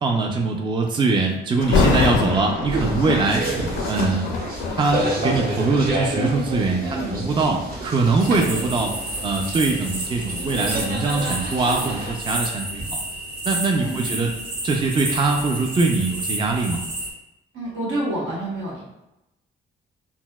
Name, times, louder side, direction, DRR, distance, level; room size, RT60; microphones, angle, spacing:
voice 1, 0.0-3.4 3.8-12.9 13.5-14.3 14.6-16.8, right 3 dB, 25° right, 2 dB, 0.4 m, -22 dB
Thunder, 1.6-6.6 7.2-7.5 8.1-10.9 11.3-11.4, left 4 dB, 80° left, 0.5 m, -26 dB
sound 1, 2.6-12.1, right 1 dB, 45° right, 0.9 m, -29 dB
voice 2, 6.8-7.3 13.7-14.0 17.5-18.8, right 1 dB, 80° right, -5 dB, 1.2 m, -28 dB
sound 2, 8.2-17.1, right 1 dB, 60° right, 1.3 m, -31 dB
4.1 x 2.0 x 2.3 m, 0.91 s
cardioid pair, 90°, 20 cm